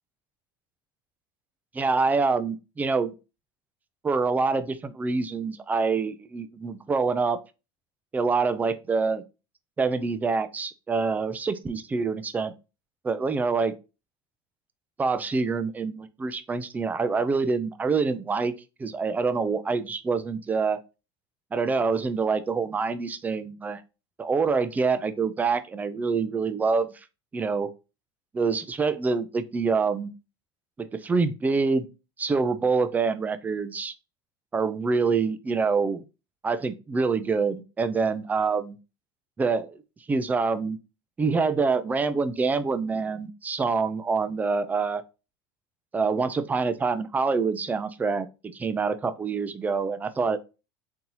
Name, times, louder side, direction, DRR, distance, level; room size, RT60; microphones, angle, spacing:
voice 1, 1.7-3.1 4.0-7.4 8.1-9.2 9.8-12.5 13.0-13.7 15.0-18.5 18.8-20.8 21.5-23.8 24.2-26.9 27.3-27.7 28.3-30.1 30.8-31.9 32.2-33.9 34.5-36.0 36.4-38.8 39.4-39.8 40.1-40.8 41.2-45.0 45.9-48.3 48.5-50.4, right 4 dB, 15° right, 0.3 m, -26 dB
3.8 x 2.8 x 2.9 m
supercardioid pair, 125°, 12 cm